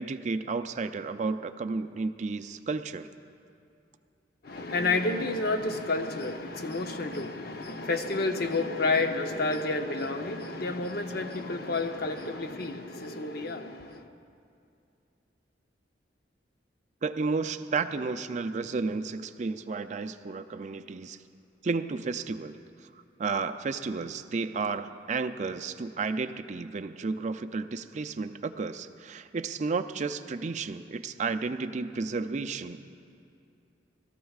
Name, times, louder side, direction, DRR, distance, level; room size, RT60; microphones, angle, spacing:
voice 1, 0.0-3.1 17.0-21.2 21.6-22.6 23.2-32.8, right 4 dB, 40° right, 0.4 m, -32 dB
voice 2, 4.4-14.1, left 3 dB, 55° left, 0.7 m, -30 dB
21.5 x 13.5 x 2.4 m
head